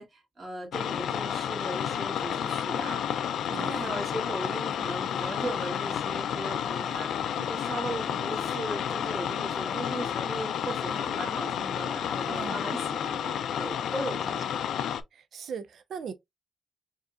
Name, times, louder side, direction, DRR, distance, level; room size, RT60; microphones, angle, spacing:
voice 1, 0.0-14.5, right 1 dB, 35° right, 2.0 m, -38 dB
sound 1, 0.7-15.0, left 9 dB, 90° left, 0.4 m, -31 dB
voice 2, 3.5-4.0 12.2-12.6 15.1-16.1, right 6 dB, 70° right, 0.4 m, -38 dB
4.8 x 2.8 x 2.3 m
cardioid pair, 120°, 0 cm